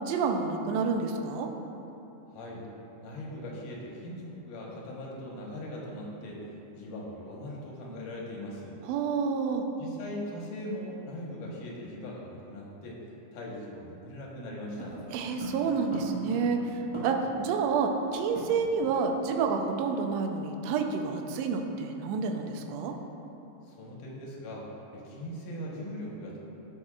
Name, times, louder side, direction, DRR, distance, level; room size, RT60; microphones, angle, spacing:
voice 1, 0.0-1.5 8.9-9.6 15.1-22.9, right 5 dB, 80° right, 3 dB, 1.6 m, -29 dB
voice 2, 2.3-2.7 3.0-6.5 6.7-8.8 9.8-13.0 13.3-15.0 23.6-26.4, left 1 dB, 90° left, -3 dB, 2.8 m, -40 dB
sound 1, 14.8-17.4 17.7-17.8 18.1-19.1 19.3-19.6 19.9-20.2, right 1 dB, 20° right, 1.2 m, -39 dB
14.0 x 6.5 x 2.4 m, 3.0 s
omnidirectional pair, 3.6 m